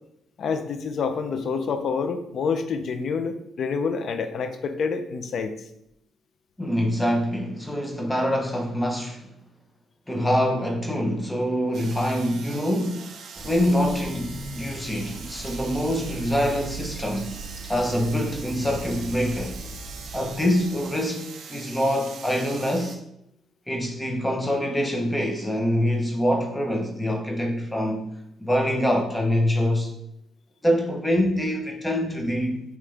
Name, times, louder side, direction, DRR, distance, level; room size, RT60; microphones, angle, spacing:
voice 1, 0.4-5.5, left 5 dB, 60° left, 8 dB, 0.7 m, -27 dB
voice 2, 6.6-9.3 10.1-13.1 13.4-17.3 17.7-19.6 20.1-21.2 21.5-23.0 23.7-28.1 28.4-29.9 30.6-32.6, equal, 10° left, 2 dB, 0.9 m, -25 dB
sound 1, 11.7-23.0, right 5 dB, 65° right, 0.7 m, -42 dB
Fill (with liquid), 13.3-21.0, right 3 dB, 10° right, 2.2 m, -39 dB
8.5 x 3.2 x 3.5 m, 0.78 s
cardioid pair, 90°, 0 cm